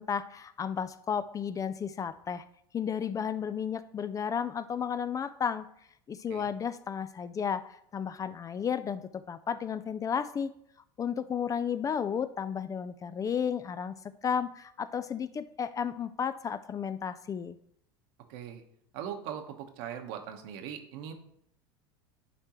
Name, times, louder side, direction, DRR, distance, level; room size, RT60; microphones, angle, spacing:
voice 1, 0.0-2.4 2.7-5.7 6.1-10.5 11.0-13.9 14.2-17.6, left 7 dB, 25° left, 14 dB, 0.4 m, -33 dB
voice 2, 18.3-18.6 18.9-21.1, right 9 dB, 65° right, 5 dB, 1.1 m, -40 dB
11.0 x 4.5 x 3.0 m, 0.69 s
hypercardioid pair, 90°, 13 cm